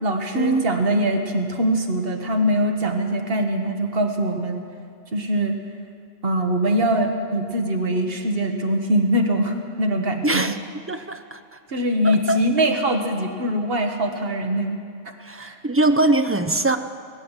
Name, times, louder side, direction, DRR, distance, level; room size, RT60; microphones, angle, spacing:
voice 1, 0.0-4.6 5.1-5.5 6.2-10.5 11.7-14.8 15.3-15.6, right 1 dB, 70° right, 4 dB, 1.6 m, -22 dB
voice 2, 10.2-10.6 10.9-11.6 12.0-12.4 15.2-16.8, right 2 dB, 20° right, 8 dB, 0.4 m, -22 dB
19.5 x 9.7 x 7.3 m, 2.3 s
omnidirectional pair, 1.0 m